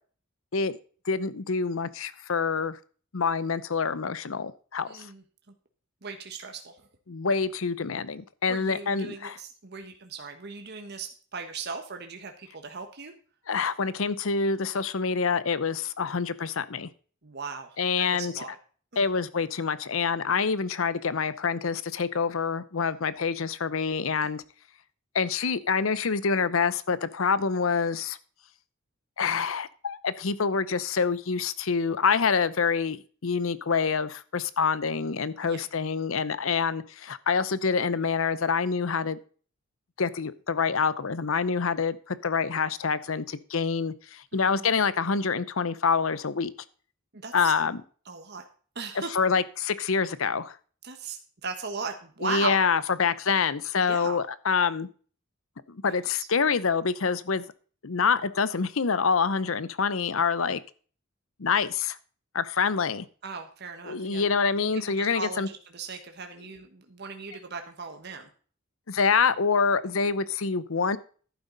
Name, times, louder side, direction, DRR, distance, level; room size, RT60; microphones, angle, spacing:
voice 1, 1.0-2.8 3.1-5.1 7.1-9.4 13.5-16.9 17.8-18.4 19.0-24.4 25.1-28.2 29.2-33.0 33.2-39.2 40.0-46.5 47.3-47.8 49.1-50.6 52.2-54.9 55.7-57.4 57.8-60.6 61.4-62.0 62.3-63.1 63.8-65.5 68.9-71.0, left 5 dB, 75° left, 16 dB, 0.7 m, -26 dB
voice 2, 4.9-5.2 6.0-6.8 8.5-13.1 17.2-18.6 18.9-19.0 35.4-35.6 44.3-44.7 47.1-47.5 48.1-48.4 48.7-49.1 50.8-52.6 53.8-54.2 56.2-56.3 63.2-64.2 64.6-68.3, right 5 dB, 50° right, 5 dB, 1.3 m, -38 dB
11.5 x 9.0 x 4.0 m, 0.41 s
head